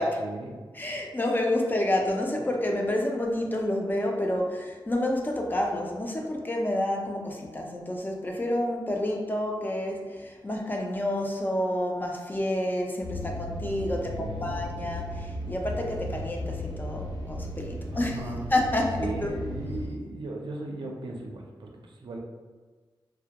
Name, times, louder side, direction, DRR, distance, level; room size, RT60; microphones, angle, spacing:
voice 1, 0.2-0.6 14.1-14.6 17.9-18.5 19.0-22.2, right 2 dB, 70° right, 0 dB, 0.4 m, -37 dB
voice 2, 0.7-18.2 18.5-19.3, left 1 dB, 25° left, 1 dB, 0.3 m, -29 dB
sound 1, 13.0-19.9, equal, 55° left, 0.8 m, -35 dB
2.2 x 2.1 x 2.8 m, 1.4 s
wide cardioid pair, 90°, 9 cm